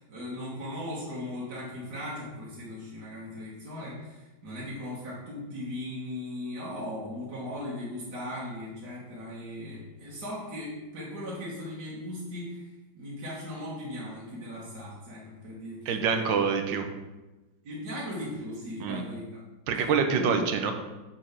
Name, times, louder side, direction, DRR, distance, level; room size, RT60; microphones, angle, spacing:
voice 1, 0.0-12.7 13.0-16.1 17.6-19.3 19.8-20.5, left 1 dB, 55° right, -6 dB, 2.0 m, -38 dB
voice 2, 15.9-16.9 18.8-19.0 19.7-20.7, right 5 dB, 75° right, 6 dB, 1.5 m, -26 dB
6.4 x 4.6 x 5.9 m, 1.1 s
omnidirectional pair, 2.1 m